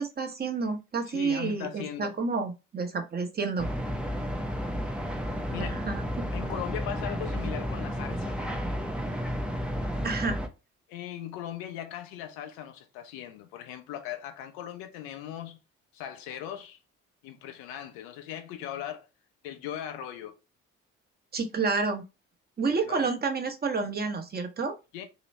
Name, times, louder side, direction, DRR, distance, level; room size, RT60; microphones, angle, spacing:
voice 1, 0.0-3.7 5.6-6.0 10.0-10.4 21.3-22.1 22.6-24.7, right 4 dB, 25° right, 1.0 m, -29 dB
voice 2, 1.0-2.1 5.5-5.8 6.3-8.4 10.9-15.6 15.9-16.8 17.2-19.1 19.4-20.4 22.6-23.1 24.9-25.0, left 10 dB, 65° left, 0.8 m, -39 dB
sound 1, 3.6-10.5, equal, 5° right, 0.8 m, -32 dB
3.0 x 3.0 x 4.2 m
figure-of-eight pair, 50°, 38 cm